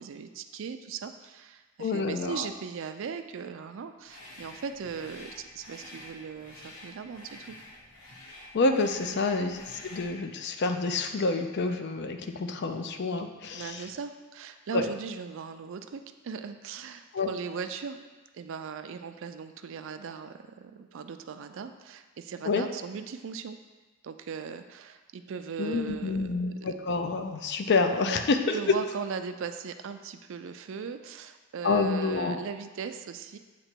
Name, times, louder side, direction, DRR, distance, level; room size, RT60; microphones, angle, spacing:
voice 1, 0.0-7.6 9.1-9.2 13.5-18.0 18.3-23.6 24.0-26.5 28.0-28.2 28.5-33.4, right 6 dB, 65° right, 9 dB, 0.4 m, -38 dB
voice 2, 1.8-2.5 8.5-13.8 14.7-14.9 17.1-17.3 22.4-22.6 25.6-28.6 31.6-32.4, left 3 dB, 55° left, 7 dB, 0.5 m, -28 dB
sound 1, 4.0-10.2, left 1 dB, 75° left, 1.2 m, -48 dB
7.7 x 3.0 x 4.4 m, 1.3 s
head